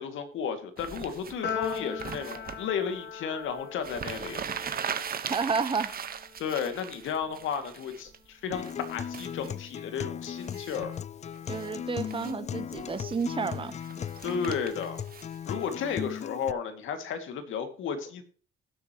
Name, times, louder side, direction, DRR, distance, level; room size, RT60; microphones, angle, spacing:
voice 1, 0.0-4.4 6.4-10.9 14.2-15.0 15.5-18.2, left 7 dB, 80° left, 7 dB, 2.4 m, -33 dB
sound 1, 0.8-2.6 3.5-3.6 3.8-8.2 8.6-9.5 10.4-11.0 11.3-11.7 12.0-12.4 12.8-15.9, right 7 dB, 50° right, 1.3 m, -39 dB
Piano, 1.4-7.9, left 7 dB, 60° left, 3.0 m, -40 dB
voice 2, 5.3-5.9 11.5-13.7, right 5 dB, 25° right, 11 dB, 1.0 m, -31 dB
Acoustic guitar, 8.5-16.5, left 8 dB, 35° left, 0.4 m, -37 dB
19.5 x 7.9 x 3.1 m, 0.42 s
cardioid pair, 90°, 20 cm